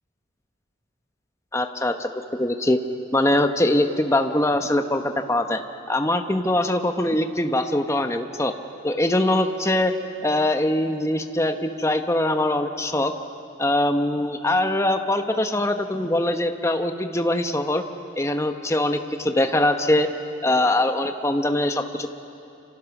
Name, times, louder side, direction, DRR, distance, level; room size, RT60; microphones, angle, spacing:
voice 1, 1.5-2.8 3.1-5.6 5.9-8.5 8.8-9.9 10.2-13.1 13.6-17.8 18.2-20.1 20.4-22.1, left 1 dB, 15° left, 7 dB, 1.0 m, -22 dB
28.5 x 26.0 x 6.0 m, 2.7 s
head